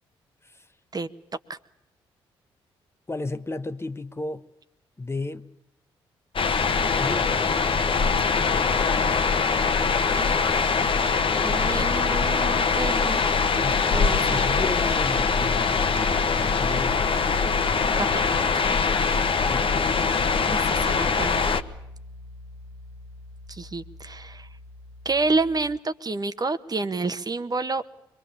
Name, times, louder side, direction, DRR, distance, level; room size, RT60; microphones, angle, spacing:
voice 1, 3.1-4.4 5.0-5.5 7.0-7.3 13.6-17.1, left 2 dB, 20° left, 1.1 m, -33 dB
sound 1, 6.4-21.6, left 5 dB, 45° left, 1.3 m, -23 dB
voice 2, 10.1-10.5 11.4-13.2 13.9-14.5 18.0-18.5 20.5-21.4 23.5-24.5 25.0-27.8, right 3 dB, 30° right, 1.3 m, -29 dB
Piano, 19.5-25.8, left 2 dB, 60° left, 1.5 m, -43 dB
25.0 x 22.5 x 6.9 m
hypercardioid pair, 40°, 13 cm